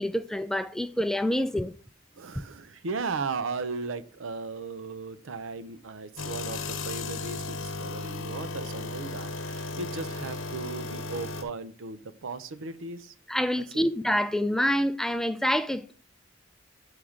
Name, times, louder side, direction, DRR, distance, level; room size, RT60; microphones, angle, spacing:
voice 1, 0.0-1.7 13.3-15.9, equal, ahead, 0.3 m, -27 dB
voice 2, 2.1-13.1 13.7-13.9, right 4 dB, 80° right, 0.6 m, -36 dB
sound 1, 6.2-11.4, left 3 dB, 80° left, 0.8 m, -35 dB
8.6 x 4.7 x 3.7 m
head